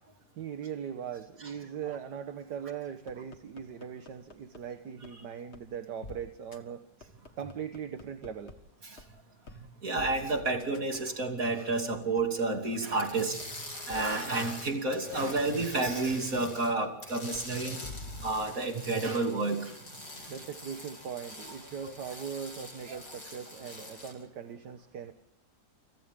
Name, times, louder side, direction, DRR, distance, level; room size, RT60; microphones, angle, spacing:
voice 1, 0.4-6.9 7.4-8.5 20.3-25.1, right 8 dB, 70° right, 8 dB, 1.7 m, -40 dB
sound 1, 3.1-4.6 5.0-5.1 5.5-5.6 6.0-6.2 6.5-6.6 7.0-8.5 9.0-9.1 9.5-9.6 10.0-12.5 12.9-13.0 13.4-13.5 13.9-14.0 14.4-14.5 14.9-16.4 16.8-16.9 17.3-17.4 17.8-18.7, left 3 dB, 40° left, 1.9 m, -46 dB
voice 2, 9.8-13.4 13.9-17.9 18.2-19.7 21.8-21.9 22.9-23.0, right 3 dB, 50° right, 3 dB, 3.3 m, -30 dB
sound 2, 13.0-16.7 17.0-24.1, left 2 dB, 70° left, 7.4 m, -45 dB
29.0 x 27.5 x 3.7 m, 0.69 s
omnidirectional pair, 1.9 m